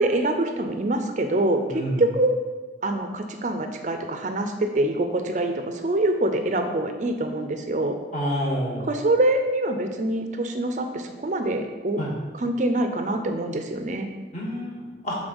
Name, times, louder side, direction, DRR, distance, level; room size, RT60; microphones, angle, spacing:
voice 1, 0.0-2.4 2.8-8.0 8.8-12.0 12.3-14.1, right 1 dB, 40° right, 6 dB, 0.5 m, -25 dB
voice 2, 1.7-2.0 8.1-8.9 12.0-12.1 14.3-15.2, equal, 40° left, -5 dB, 1.8 m, -28 dB
7.0 x 3.7 x 5.4 m, 1.3 s
head